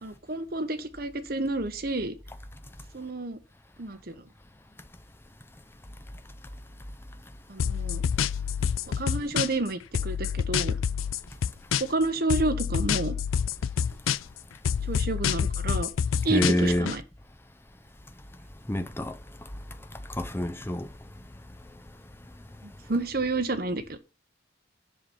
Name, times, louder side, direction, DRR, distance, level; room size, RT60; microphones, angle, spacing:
voice 1, 0.0-2.2 2.9-3.4 3.8-4.1 7.5-8.0 9.0-10.7 11.8-13.2 14.9-15.9 16.2-17.0 22.9-24.0, right 2 dB, 50° right, 1.0 m, -30 dB
sound 1, 7.6-9.7 9.9-12.0 12.3-14.4 14.6-17.0, left 7 dB, 90° left, 0.4 m, -27 dB
voice 2, 16.3-16.9 18.7-19.2 20.1-20.9, left 1 dB, 10° left, 0.6 m, -26 dB
7.6 x 5.7 x 6.1 m
head